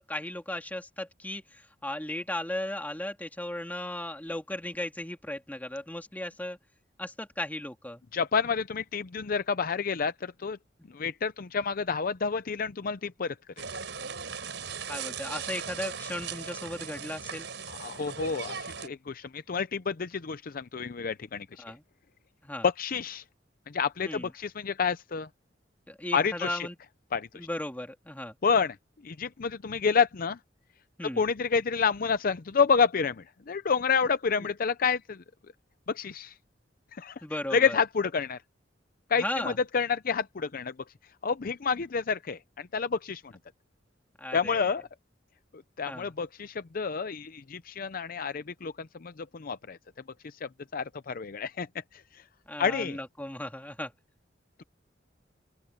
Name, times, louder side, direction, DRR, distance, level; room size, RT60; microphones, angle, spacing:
voice 1, 0.0-6.6 7.0-8.0 10.8-10.9 14.9-17.5 21.6-21.8 22.4-22.7 24.0-24.3 25.9-26.8 27.3-28.4 31.0-31.2 37.2-37.8 39.1-39.6 44.2-44.7 45.9-46.1 52.5-53.9, left 1 dB, 10° left, 2.3 m, -36 dB
voice 2, 8.1-10.6 10.9-13.6 17.7-21.5 22.6-23.2 23.7-25.3 26.1-26.7 27.1-27.3 28.4-28.8 29.0-30.4 31.2-35.2 35.9-36.3 37.0-37.1 37.5-38.4 39.1-40.7 41.2-43.2 44.3-44.9 45.8-49.8 50.2-51.7 51.9-52.0 52.6-53.0, left 5 dB, 50° left, 0.6 m, -29 dB
sound 1, 13.6-18.9, right 6 dB, 70° right, 7.1 m, -38 dB
open air
head